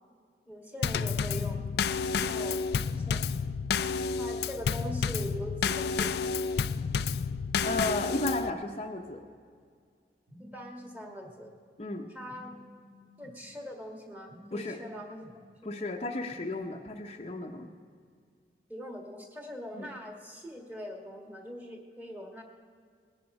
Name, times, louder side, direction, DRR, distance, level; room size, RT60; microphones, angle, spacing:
voice 1, 0.5-1.6 2.1-3.3 4.2-6.2 10.4-11.5 12.1-12.5 13.2-15.2 15.6-15.7 18.7-22.4, equal, 10° right, 2 dB, 1.4 m, -42 dB
Drum kit / Snare drum / Bass drum, 0.8-8.5, left 5 dB, 65° left, 0.4 m, -30 dB
voice 2, 7.6-9.2 11.8-12.1 14.5-14.8 15.6-17.7 19.7-19.9, left 2 dB, 35° left, 3 dB, 0.7 m, -34 dB
Telephone, 10.3-11.3 12.3-13.3 14.3-15.3 16.3-16.5, equal, 50° right, 1.9 m, -53 dB
19.0 x 10.5 x 5.3 m, 2.1 s
head